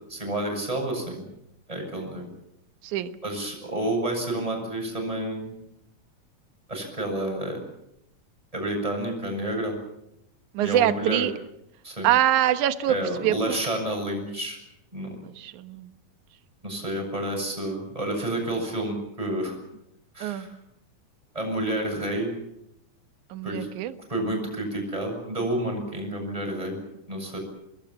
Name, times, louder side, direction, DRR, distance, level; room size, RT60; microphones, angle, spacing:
voice 1, 0.1-1.2 1.7-2.3 3.2-5.5 6.7-7.6 8.5-9.8 10.6-11.3 11.8-12.1 12.9-14.6 14.9-15.2 16.6-19.6 20.1-20.5 21.3-22.3 23.4-23.7 24.1-26.8 27.1-27.4, right 1 dB, 10° right, 2 dB, 7.5 m, -29 dB
voice 2, 10.5-11.3 12.0-13.0 13.2-13.6 15.2-15.9 20.2-20.5 23.3-23.9, right 12 dB, 65° right, 10 dB, 2.5 m, -24 dB
28.5 x 20.5 x 7.3 m, 0.80 s
omnidirectional pair, 4.0 m